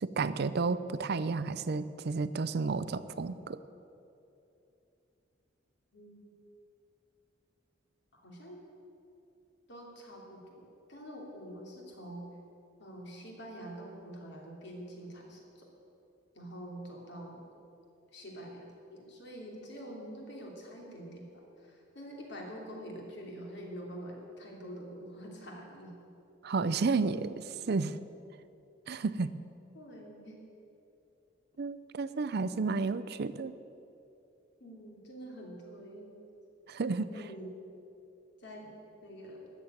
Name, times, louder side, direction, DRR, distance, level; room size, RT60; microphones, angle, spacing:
voice 1, 0.0-3.6 26.4-28.0 28.9-29.3 31.6-33.5 36.7-37.1, right 4 dB, 55° right, 14 dB, 0.5 m, -32 dB
voice 2, 5.9-6.3 8.1-8.6 9.7-12.2 12.8-15.7 16.3-17.4 18.1-25.9 29.7-30.4 34.6-36.1 37.1-37.5 38.4-39.5, equal, 65° left, -1 dB, 3.0 m, -46 dB
13.5 x 7.4 x 9.4 m, 2.7 s
head